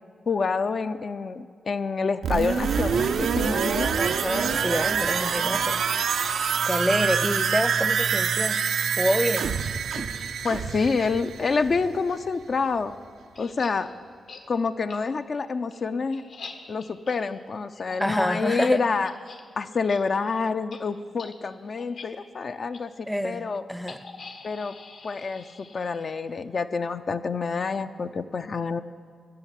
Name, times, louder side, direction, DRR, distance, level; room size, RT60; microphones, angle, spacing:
voice 1, 0.3-4.0 10.4-12.9 13.4-13.9 14.5-16.2 16.7-19.1 19.6-23.6 24.4-24.7 25.0-28.8, left 4 dB, 50° left, 9 dB, 0.4 m, -27 dB
sound 1, 2.2-12.0 12.3-12.4, right 6 dB, 80° right, 0.5 m, -26 dB
voice 2, 4.0-5.8 6.6-8.6 9.0-9.6 18.0-18.8 23.1-23.4 23.7-24.0, equal, ahead, 13 dB, 0.6 m, -27 dB
sound 2, 13.3-13.7 14.3-14.4 14.9-15.0 15.4-19.4 19.7-20.0 20.2-20.4 20.7-20.8 21.2-21.3 21.8-22.1 22.7-22.8 23.9-26.2, left 4 dB, 70° left, 1.2 m, -44 dB
13.5 x 6.4 x 9.9 m, 2.1 s
cardioid pair, 85°, 0 cm